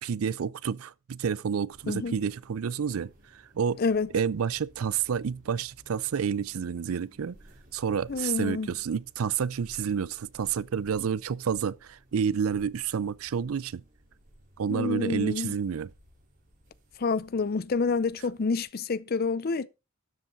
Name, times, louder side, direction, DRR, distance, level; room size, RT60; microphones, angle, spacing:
voice 1, 0.0-3.8 4.1-7.4 7.7-13.8 14.6-15.9, right 7 dB, 80° right, 0.4 m, -29 dB
sound 1, 1.7-18.6, equal, 40° right, 5.0 m, -58 dB
voice 2, 1.9-2.2 3.8-4.1 8.1-8.7 14.7-15.5 17.0-19.7, left 4 dB, 45° left, 0.5 m, -28 dB
12.0 x 7.4 x 3.9 m
head